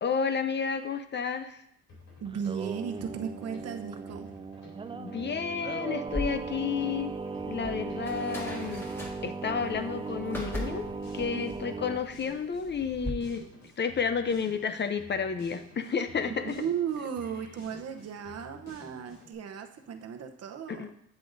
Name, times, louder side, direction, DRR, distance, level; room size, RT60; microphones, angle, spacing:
voice 1, 0.0-1.6 4.9-7.1 7.5-8.9 9.2-10.8 11.1-13.4 13.8-16.5 20.7-20.9, left 6 dB, 35° left, 9 dB, 0.6 m, -31 dB
Drum kit, 1.9-19.3, left 2 dB, 80° left, 3.2 m, -53 dB
voice 2, 2.2-4.3 11.3-11.5 16.3-20.9, right 7 dB, 55° right, 4 dB, 0.9 m, -35 dB
Singing, 2.3-12.0, right 4 dB, 20° right, 0.3 m, -38 dB
sound 1, 6.1-13.1, equal, 5° left, 1.6 m, -40 dB
8.0 x 7.9 x 2.6 m, 0.72 s
cardioid pair, 90°, 30 cm